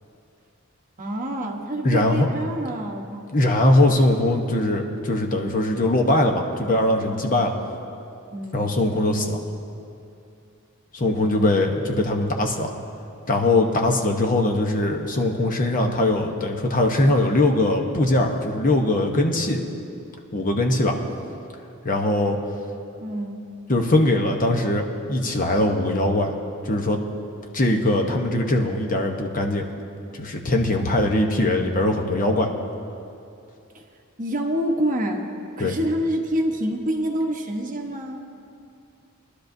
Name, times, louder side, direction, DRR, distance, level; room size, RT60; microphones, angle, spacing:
voice 1, 1.0-3.3 8.3-8.8 23.0-23.4 33.7-33.8 34.2-35.3 35.6-38.2, equal, 40° right, 2 dB, 1.1 m, -27 dB
voice 2, 1.8-2.3 3.3-7.5 8.5-9.4 10.9-12.7 13.3-19.6 20.3-20.9 21.8-22.4 23.7-26.3 26.6-27.0 27.5-29.7 30.1-32.5 35.6-35.7, left 1 dB, 40° left, 3 dB, 0.9 m, -21 dB
22.5 x 11.5 x 2.7 m, 2.6 s
head